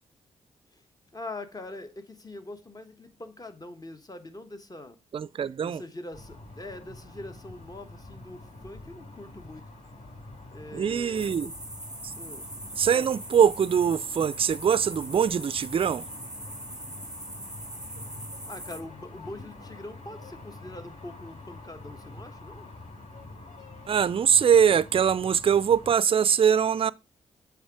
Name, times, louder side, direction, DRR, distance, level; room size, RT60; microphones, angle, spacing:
voice 1, 1.1-5.0 5.6-9.7 10.5-11.6 12.2-12.5 18.5-22.7, left 2 dB, 25° left, 1.2 m, -43 dB
voice 2, 5.1-5.8 10.7-11.5 12.8-16.0 23.9-26.9, right 8 dB, 35° right, 0.4 m, -22 dB
sound 1, 6.1-25.9, left 2 dB, 50° left, 3.6 m, -46 dB
Dem Dank Crickets, 11.1-18.8, right 1 dB, 5° right, 1.6 m, -41 dB
7.2 x 3.5 x 4.8 m
hypercardioid pair, 40°, 15 cm